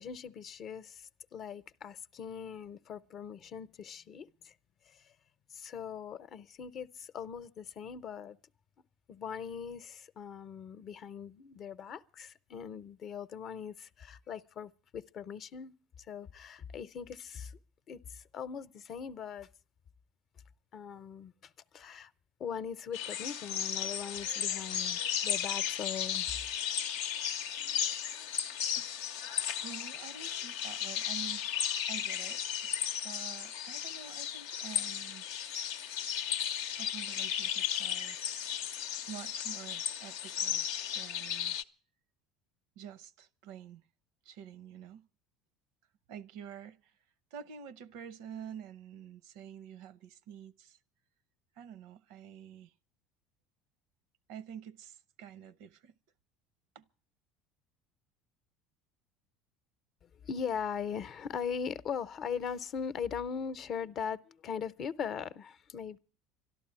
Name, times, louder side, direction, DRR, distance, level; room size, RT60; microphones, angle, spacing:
voice 1, 0.0-4.5 4.9-5.0 5.5-8.4 9.1-15.7 16.1-17.6 17.9-19.5 20.7-22.1 22.4-26.4 60.2-66.0, left 7 dB, 50° left, 0.7 m, -40 dB
sound 1, 22.9-41.6, left 9 dB, 85° left, 0.6 m, -35 dB
voice 2, 29.6-32.8 33.0-35.2 36.8-38.2 39.1-40.7 40.9-41.6 42.8-43.9 44.2-45.1 46.1-47.0 47.3-50.8 51.5-52.7 54.3-55.9 56.7-56.9, right 8 dB, 75° right, 0.6 m, -48 dB
12.5 x 11.5 x 8.8 m
supercardioid pair, 95°, 0 cm